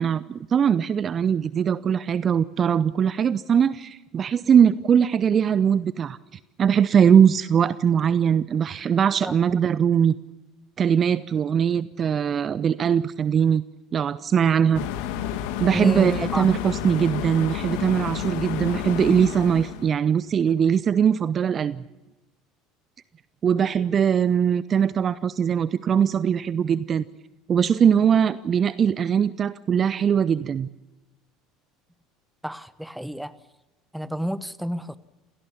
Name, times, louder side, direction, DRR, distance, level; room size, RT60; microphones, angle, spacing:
voice 1, 0.0-6.2 6.6-10.1 10.8-13.6 13.9-14.9 15.6-21.8 23.4-27.0 27.5-30.7, right 8 dB, 35° right, 17 dB, 0.7 m, -21 dB
sound 1, 14.7-19.9, left 10 dB, 60° left, 1.9 m, -30 dB
voice 2, 15.7-16.4 32.4-33.3 33.9-35.0, right 1 dB, ahead, 15 dB, 1.2 m, -29 dB
27.5 x 18.0 x 7.2 m, 1.0 s
figure-of-eight pair, 65°, 0 cm